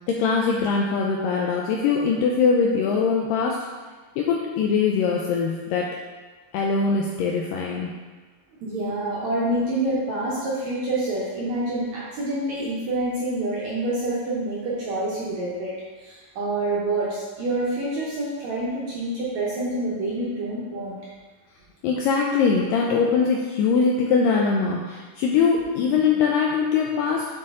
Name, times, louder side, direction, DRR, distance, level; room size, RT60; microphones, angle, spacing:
voice 1, 0.1-3.7 4.2-6.0 6.5-7.9 21.8-27.3, left 5 dB, 85° left, -1 dB, 2.0 m, -22 dB
voice 2, 8.6-15.7 16.0-21.0, right 2 dB, 70° right, -7 dB, 1.8 m, -27 dB
8.5 x 4.2 x 3.7 m, 1.4 s
omnidirectional pair, 4.5 m